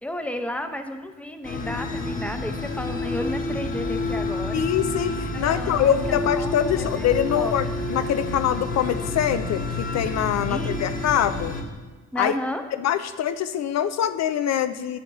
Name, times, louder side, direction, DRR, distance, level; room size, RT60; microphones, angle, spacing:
voice 1, 0.0-4.7 5.3-7.7 10.5-10.8 12.1-12.6, left 1 dB, 5° left, 6 dB, 0.7 m, -33 dB
sound 1, 1.4-11.6, left 2 dB, 30° left, 1.3 m, -29 dB
voice 2, 4.5-11.5 12.2-12.3 12.8-15.0, left 9 dB, 60° left, 11 dB, 0.5 m, -24 dB
10.5 x 7.3 x 3.0 m, 1.3 s
cardioid pair, 90°, 30 cm